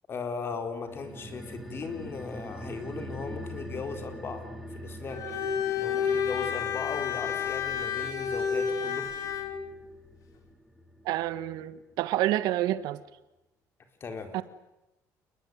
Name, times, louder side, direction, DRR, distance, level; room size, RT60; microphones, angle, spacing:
voice 1, 0.1-5.2 5.8-9.1 14.0-14.4, left 4 dB, 35° left, 4.3 m, -37 dB
sound 1, 0.9-11.7 12.0-12.1, equal, ahead, 3.2 m, -44 dB
Bowed string instrument, 5.1-9.6, left 7 dB, 60° left, 3.9 m, -30 dB
voice 2, 11.0-13.0 14.3-14.4, right 14 dB, 85° right, 1.5 m, -28 dB
28.0 x 21.0 x 9.5 m
cardioid pair, 135°, 7 cm